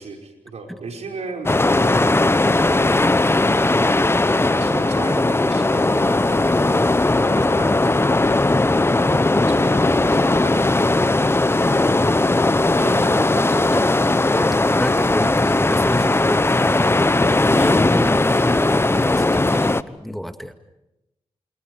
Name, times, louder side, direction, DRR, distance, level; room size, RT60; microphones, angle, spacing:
voice 1, 0.0-2.3 2.6-3.0 4.5-8.4 9.0-11.2 12.5-14.3 17.6-17.9, right 3 dB, 75° right, 2 dB, 5.3 m, -36 dB
sound 1, 1.5-19.8, left 2 dB, 20° left, 1.0 m, -18 dB
voice 2, 10.7-11.0 14.3-16.9 17.2-20.5, equal, ahead, 7 dB, 2.1 m, -29 dB
28.5 x 28.0 x 4.8 m, 0.90 s
supercardioid pair, 45°, 11 cm